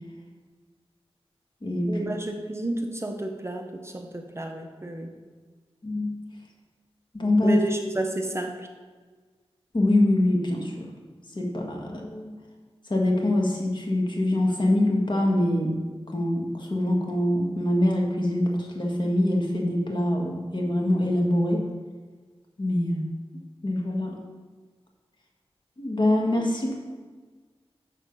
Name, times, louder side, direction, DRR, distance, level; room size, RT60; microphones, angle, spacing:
voice 1, 1.8-5.1 7.4-8.7, right 2 dB, 25° right, 4 dB, 0.8 m, -31 dB
voice 2, 7.1-7.6 9.7-10.8 11.3-12.3 12.9-15.8 16.1-21.6 22.6-23.0 23.6-24.2 25.8-26.8, left 1 dB, 50° left, 0 dB, 1.6 m, -24 dB
6.8 x 6.4 x 5.3 m, 1.4 s
wide cardioid pair, 80°, 10 cm